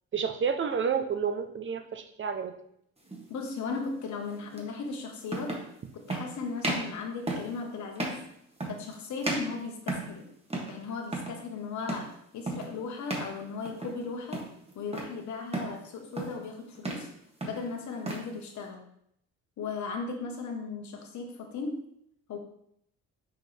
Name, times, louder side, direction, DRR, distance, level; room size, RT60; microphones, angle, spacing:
voice 1, 0.1-2.5, right 6 dB, 40° right, 8 dB, 0.8 m, -30 dB
sound 1, 3.1-3.3 4.6-4.7 5.3-5.7 6.1-6.3 6.6-6.9 7.3-7.6 8.0-8.3 8.6-8.9 9.2-10.2 10.5-10.8 11.0-11.4 11.9-12.1 12.5-12.7 13.1-13.3 13.7-14.0 14.3-15.1 15.5-15.8 16.2-16.5 16.8-17.1 17.4-18.3, right 2 dB, 20° right, 1.5 m, -34 dB
voice 2, 3.3-5.6 5.9-8.3 8.7-10.3 10.7-14.5 14.7-17.1 17.4-18.8 19.6-21.8 22.3-22.4, left 4 dB, 70° left, 2 dB, 1.3 m, -37 dB
6.5 x 4.5 x 3.4 m, 0.72 s
cardioid pair, 90°, 30 cm